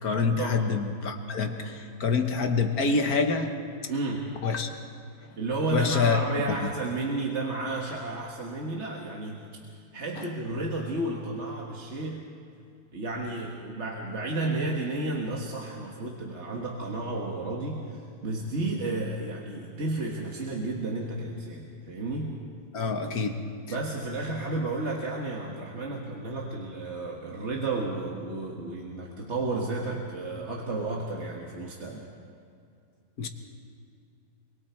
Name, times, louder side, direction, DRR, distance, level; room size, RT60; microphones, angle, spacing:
voice 1, 0.0-3.6 4.4-4.7 5.3-5.4 5.7-6.2 6.5-6.6 10.2-10.3 22.7-23.5 33.2-33.3, left 4 dB, 70° left, 5 dB, 1.7 m, -26 dB
voice 2, 3.9-4.3 5.4-9.4 9.9-12.3 12.9-22.4 23.7-32.0, right 2 dB, 45° right, -1 dB, 1.8 m, -32 dB
25.5 x 23.5 x 4.5 m, 2.4 s
omnidirectional pair, 1.6 m